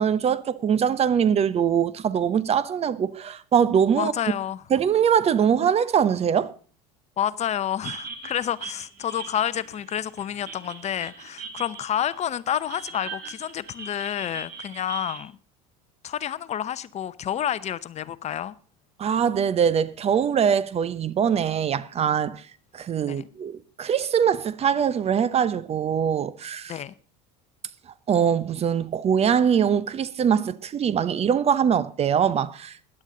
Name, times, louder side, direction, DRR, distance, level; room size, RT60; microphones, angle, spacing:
voice 1, 0.0-4.1 4.7-6.5 19.0-22.4 22.7-26.7 28.1-32.8, right 8 dB, 35° right, 0.8 m, -22 dB
voice 2, 3.9-4.6 7.2-15.4 16.0-18.5 23.0-23.3 26.7-26.9, left 10 dB, 35° left, 0.7 m, -29 dB
sound 1, 7.8-15.2, right 5 dB, 50° right, 2.6 m, -40 dB
16.5 x 11.0 x 3.9 m
hypercardioid pair, 90°, 18 cm